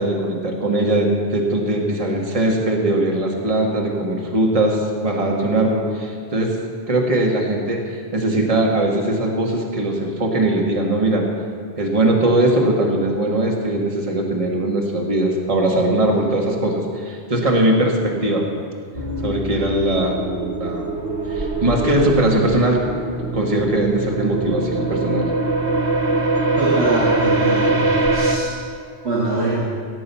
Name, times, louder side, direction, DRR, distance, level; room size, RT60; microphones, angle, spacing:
voice 1, 0.0-6.6 6.9-11.2 11.8-18.4 19.2-20.9 21.3-22.8 23.2-25.3, right 1 dB, 35° right, -1 dB, 1.6 m, -20 dB
sound 1, 18.9-28.4, right 2 dB, 60° right, 1.4 m, -22 dB
voice 2, 26.6-27.8 28.1-28.5 29.0-29.6, right 2 dB, 80° right, -7 dB, 2.2 m, -22 dB
17.0 x 7.6 x 5.5 m, 2.3 s
omnidirectional pair, 1.1 m